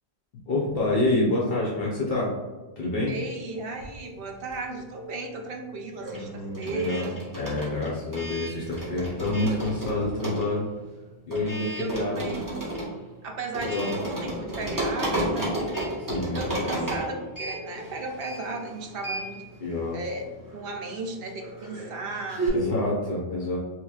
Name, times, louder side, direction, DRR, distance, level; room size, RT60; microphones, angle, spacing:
voice 1, 0.5-2.3 2.8-3.1 6.1-7.1 7.3-10.7 11.3-12.4 13.6-13.9 16.0-16.4 19.6-20.0 22.5-23.6, left 2 dB, 60° left, -4 dB, 0.9 m, -27 dB
voice 2, 3.1-7.2 11.7-12.6 13.2-16.0 16.3-19.4 19.9-20.3 20.5-22.5, right 2 dB, 65° right, 2 dB, 0.8 m, -35 dB
sound 1, 3.7-4.9 5.2-22.5, right 1 dB, 20° right, 1.0 m, -33 dB
3.9 x 3.0 x 2.3 m, 1.2 s
omnidirectional pair, 1.1 m